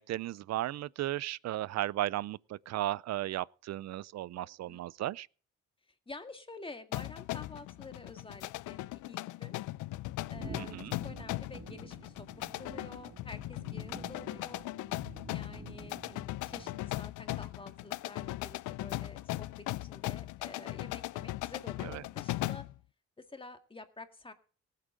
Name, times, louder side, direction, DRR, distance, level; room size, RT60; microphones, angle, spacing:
voice 1, 0.0-5.3 10.6-10.9 21.8-22.0, right 14 dB, 60° right, 0.5 m, -35 dB
voice 2, 4.4-4.8 6.1-9.6 10.3-10.8 11.0-14.6 15.3-22.7 23.2-24.3, left 3 dB, 15° left, 1.9 m, -49 dB
sound 1, 6.9-22.8, left 17 dB, 80° left, 0.5 m, -39 dB
sound 2, 10.3-17.1, right 4 dB, 45° right, 2.5 m, -50 dB
18.5 x 8.5 x 3.7 m
cardioid pair, 90°, 30 cm